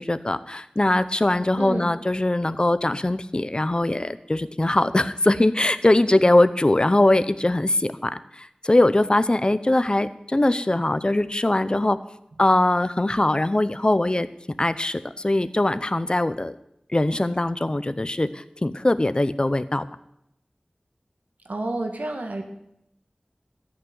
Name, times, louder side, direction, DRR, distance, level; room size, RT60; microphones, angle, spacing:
voice 1, 0.0-12.0 12.4-14.3 14.6-16.6 16.9-19.8, left 1 dB, 35° left, 14 dB, 0.7 m, -21 dB
voice 2, 1.6-1.9 21.5-22.4, right 2 dB, 90° right, 4 dB, 1.8 m, -29 dB
13.5 x 6.3 x 9.4 m, 0.79 s
wide cardioid pair, 55°, 3 cm